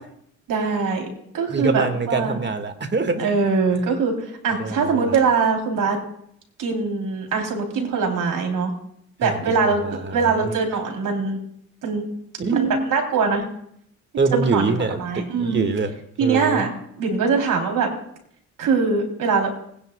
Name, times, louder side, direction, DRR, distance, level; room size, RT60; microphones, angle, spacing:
voice 1, 0.5-1.1 1.3-2.4 3.2-4.2 4.4-6.0 6.6-8.7 9.2-9.8 10.1-11.4 11.8-12.0 12.5-13.4 14.3-14.7 15.0-15.7 16.2-16.7 17.0-17.9 18.6-19.5, right 5 dB, 70° right, 2 dB, 3.3 m, -22 dB
voice 2, 1.5-3.3 4.6-5.2 9.2-9.4 9.6-10.5 12.4-12.9 14.2-15.9 16.2-16.7, right 4 dB, 30° right, 7 dB, 1.8 m, -24 dB
20.5 x 10.0 x 2.3 m, 0.71 s
supercardioid pair, 60°, 34 cm